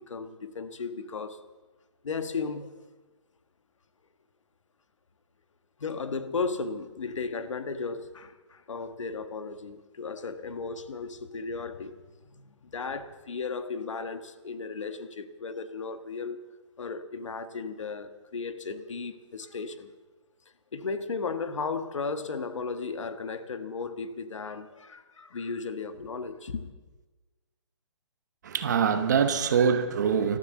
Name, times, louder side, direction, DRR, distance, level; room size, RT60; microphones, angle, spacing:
voice 1, 0.0-1.4 2.0-2.7 5.8-16.5 16.8-19.9 20.7-26.7, left 4 dB, 80° left, 1.4 m, -35 dB
voice 2, 28.4-30.4, right 7 dB, 35° right, 1.1 m, -24 dB
13.5 x 13.0 x 7.5 m
hypercardioid pair, 170°, 16 cm